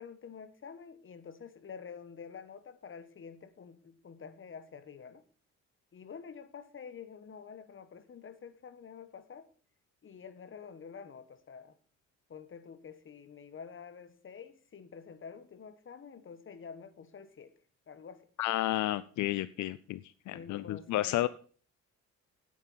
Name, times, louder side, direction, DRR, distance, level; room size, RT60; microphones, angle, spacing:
voice 1, 0.0-5.2 5.9-9.5 10.0-11.7 12.3-17.5 17.9-18.3 20.3-21.3, left 6 dB, 40° left, 13 dB, 1.3 m, -48 dB
voice 2, 18.4-21.3, left 15 dB, 75° left, 17 dB, 0.5 m, -32 dB
9.1 x 9.0 x 5.6 m, 0.43 s
cardioid pair, 90°, 30 cm